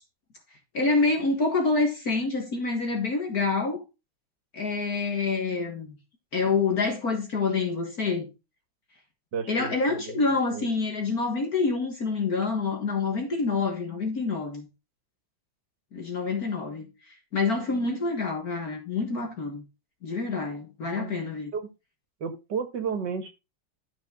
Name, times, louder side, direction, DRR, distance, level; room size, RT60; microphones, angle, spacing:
voice 1, 0.7-3.8 4.5-6.0 6.3-8.3 9.5-14.7 15.9-16.9 17.3-19.6 20.0-21.5, left 4 dB, 50° left, 2.1 m, -27 dB
voice 2, 9.3-10.2 10.5-10.7 20.9-21.1 21.5-21.7 22.2-23.3, right 6 dB, 65° right, 2.1 m, -32 dB
13.0 x 5.9 x 3.8 m
omnidirectional pair, 2.1 m